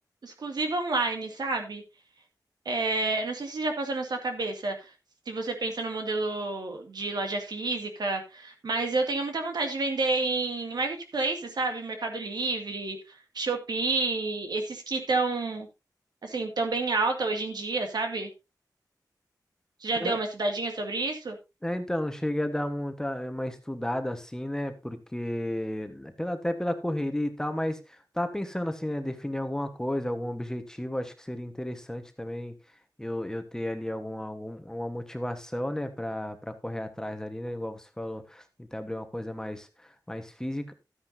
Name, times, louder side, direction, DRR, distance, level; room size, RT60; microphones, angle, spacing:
voice 1, 0.2-1.8 2.7-4.9 5.3-15.7 16.2-18.3 19.8-21.4, right 3 dB, 75° right, 4 dB, 2.3 m, -29 dB
voice 2, 21.6-32.6 33.0-40.7, left 1 dB, 10° left, 7 dB, 1.3 m, -33 dB
13.0 x 9.7 x 2.7 m, 0.26 s
wide cardioid pair, 100°, 7 cm